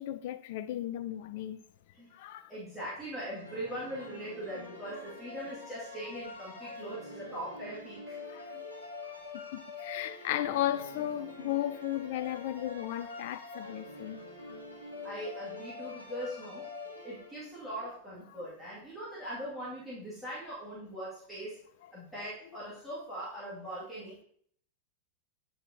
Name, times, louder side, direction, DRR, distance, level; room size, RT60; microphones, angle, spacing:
voice 1, 0.0-1.6 2.2-2.5 8.3-8.6 9.5-14.2, left 12 dB, 50° left, 0.4 m, -35 dB
voice 2, 2.5-8.2 15.0-16.7 17.0-21.6 21.9-24.3, right 1 dB, ahead, 2.1 m, -41 dB
sound 1, 3.3-17.7, left 3 dB, 85° left, 1.5 m, -45 dB
8.6 x 4.6 x 2.7 m
figure-of-eight pair, 90°, 0 cm